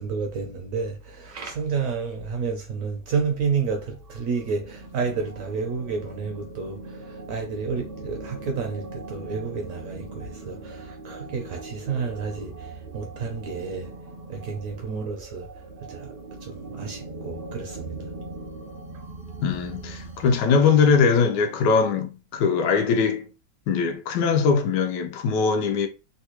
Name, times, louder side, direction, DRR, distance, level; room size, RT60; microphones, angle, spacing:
voice 1, 0.0-13.9 14.3-15.5 15.9-16.1 16.4-18.1, right 5 dB, 70° right, 0.8 m, -30 dB
sound 1, 3.9-20.4, right 3 dB, 90° right, 0.5 m, -40 dB
voice 2, 19.4-23.3 23.7-25.9, left 5 dB, 90° left, 1.2 m, -21 dB
3.3 x 2.2 x 3.0 m
omnidirectional pair, 1.8 m